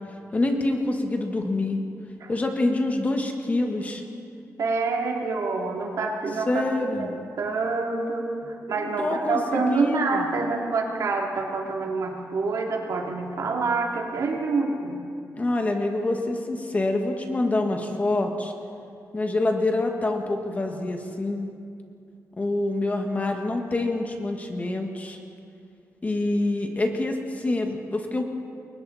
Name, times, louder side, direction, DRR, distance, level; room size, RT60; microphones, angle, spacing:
voice 1, 0.3-1.8 2.3-4.0 6.5-7.2 8.8-10.3 15.4-18.5 19.1-21.5 22.4-25.2 26.0-28.2, left 2 dB, 25° left, 3 dB, 1.9 m, -26 dB
voice 2, 4.6-6.6 7.0-15.0, right 3 dB, 65° right, 0 dB, 3.3 m, -27 dB
29.0 x 22.5 x 4.4 m, 2.5 s
wide cardioid pair, 130°, 6 cm